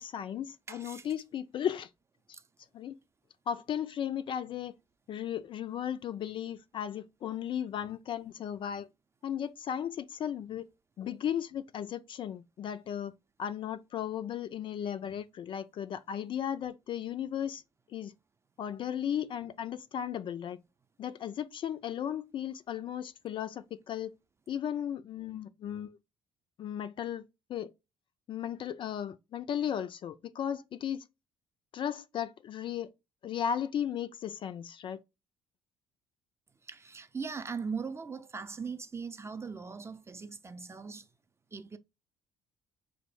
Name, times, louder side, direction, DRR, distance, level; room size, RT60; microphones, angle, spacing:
voice 1, 0.0-1.9 2.7-2.9 3.5-4.7 5.1-8.9 9.2-10.7 11.0-13.1 13.4-17.6 17.9-18.1 18.6-20.6 21.0-24.1 24.5-26.0 26.6-27.2 27.5-27.7 28.3-31.0 31.7-32.9 33.2-35.0, left 9 dB, 40° left, 0.3 m, -35 dB
voice 2, 0.7-1.1 2.3-2.4 36.6-41.1 41.5-41.8, right 5 dB, 20° right, 0.5 m, -40 dB
5.0 x 2.0 x 3.1 m
figure-of-eight pair, 50°, 13 cm